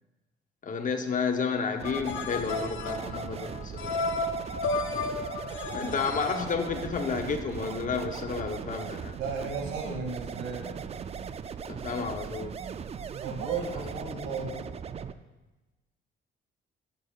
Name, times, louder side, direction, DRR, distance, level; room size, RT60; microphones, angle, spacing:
voice 1, 0.6-3.9 5.7-9.2 11.7-12.6, left 5 dB, 40° left, 6 dB, 0.9 m, -31 dB
sound 1, 1.8-7.2, left 3 dB, 75° left, 0.7 m, -33 dB
sound 2, 1.8-15.1, right 7 dB, 30° right, 0.3 m, -39 dB
voice 2, 5.7-6.3 9.2-10.7 13.2-14.5, right 4 dB, 85° right, 0 dB, 2.3 m, -35 dB
13.0 x 6.8 x 2.4 m, 1.1 s
cardioid pair, 90°, 20 cm